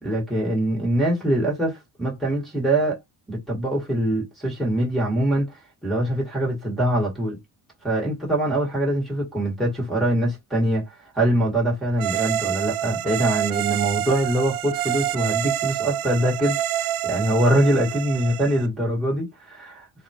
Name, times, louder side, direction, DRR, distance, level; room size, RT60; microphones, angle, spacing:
voice 1, 0.0-3.0 3.3-7.4 7.8-19.9, right 1 dB, ahead, 1.6 m, -23 dB
sound 1, 12.0-18.7, right 12 dB, 85° right, 0.5 m, -27 dB
4.1 x 2.3 x 2.8 m
cardioid pair, 155°, 33 cm